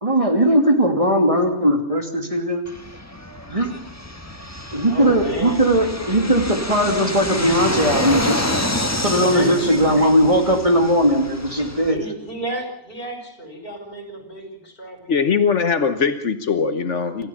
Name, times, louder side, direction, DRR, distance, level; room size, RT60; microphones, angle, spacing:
voice 1, 0.0-2.7 3.5-3.7 4.7-8.4 9.0-12.0, equal, 30° right, 3 dB, 2.8 m, -18 dB
Fixed-wing aircraft airplane, 2.7-11.9, left 1 dB, 15° left, 1.5 m, -28 dB
voice 2, 4.8-5.7 9.1-10.1 11.7-15.3, right 1 dB, 50° left, 4 dB, 5.3 m, -32 dB
voice 3, 15.1-17.3, left 6 dB, 80° left, 8 dB, 1.5 m, -21 dB
28.0 x 14.5 x 7.2 m, 0.75 s
omnidirectional pair, 1.2 m